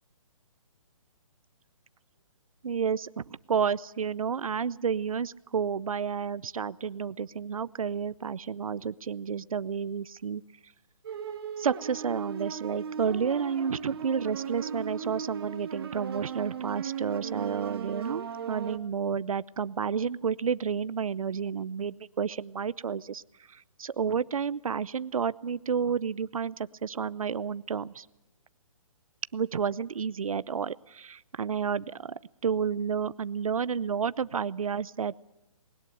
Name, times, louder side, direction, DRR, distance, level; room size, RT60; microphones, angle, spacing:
voice 1, 2.6-10.4 11.6-23.2 23.5-28.1 29.3-35.2, right 6 dB, 85° right, 18 dB, 0.7 m, -31 dB
sound 1, 11.0-18.8, right 7 dB, 45° right, 1.6 m, -37 dB
20.5 x 19.5 x 7.7 m, 0.99 s
hypercardioid pair, 170°, 18 cm